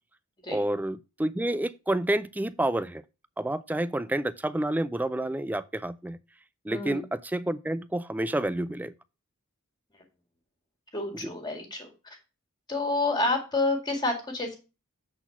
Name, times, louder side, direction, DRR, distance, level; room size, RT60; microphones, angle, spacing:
voice 1, 0.5-3.0 3.4-6.2 6.6-8.9 11.2-11.3, right 1 dB, 10° right, 0.3 m, -29 dB
voice 2, 6.7-7.0 10.9-11.9 12.7-14.6, left 2 dB, 20° left, 2.0 m, -28 dB
7.9 x 4.2 x 5.8 m
head